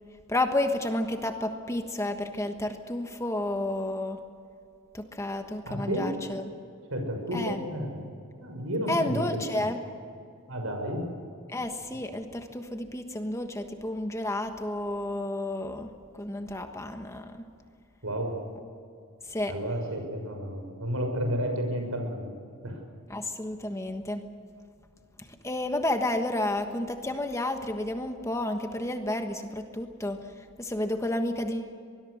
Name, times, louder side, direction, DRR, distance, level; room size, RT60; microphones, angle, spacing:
voice 1, 0.3-4.2 4.9-6.5 7.3-7.6 8.9-9.8 11.5-15.9 16.1-17.4 19.2-19.5 23.1-24.2 25.2-31.7, left 1 dB, 15° left, 6 dB, 1.3 m, -31 dB
voice 2, 5.7-6.1 6.9-8.0 8.4-9.2 10.5-11.1 18.0-18.4 19.5-22.3 22.6-22.8, equal, 75° right, 3 dB, 6.2 m, -31 dB
24.0 x 21.5 x 6.5 m, 2.4 s
head